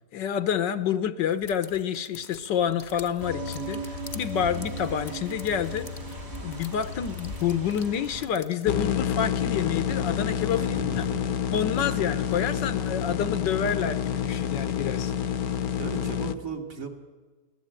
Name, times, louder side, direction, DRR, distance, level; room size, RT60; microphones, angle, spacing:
voice 1, 0.1-5.9 6.4-11.0 11.5-15.1, left 8 dB, 80° left, 12 dB, 1.6 m, -28 dB
sound 1, 1.3-8.7, left 3 dB, 30° left, 1.0 m, -45 dB
sound 2, 3.2-8.3, left 1 dB, 65° right, 4.2 m, -37 dB
voice 2, 4.4-4.7 10.6-11.4 15.8-16.9, right 4 dB, 50° right, 2 dB, 2.7 m, -37 dB
sound 3, 8.7-16.3, left 9 dB, 60° left, 1.2 m, -28 dB
23.5 x 17.0 x 9.0 m, 1.4 s
omnidirectional pair, 1.9 m